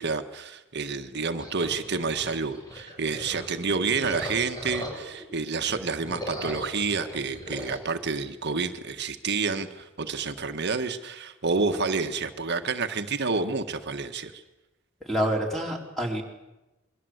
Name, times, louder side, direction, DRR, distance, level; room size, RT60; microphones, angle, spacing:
voice 1, 0.0-14.4, right 4 dB, 55° right, 7 dB, 1.6 m, -29 dB
sound 1, 1.4-5.2 5.6-7.8, equal, 20° left, 6.8 m, -38 dB
voice 2, 15.0-16.2, equal, ahead, 0 dB, 4.2 m, -27 dB
27.5 x 23.0 x 8.1 m, 1.0 s
head